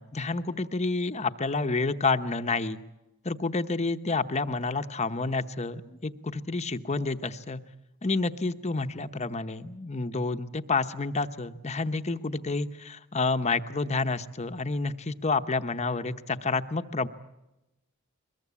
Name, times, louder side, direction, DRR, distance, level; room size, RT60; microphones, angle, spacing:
voice 1, 0.0-2.8 3.2-7.6 8.0-17.1, left 3 dB, 30° left, 9 dB, 0.9 m, -29 dB
23.0 x 21.5 x 8.4 m, 0.95 s
head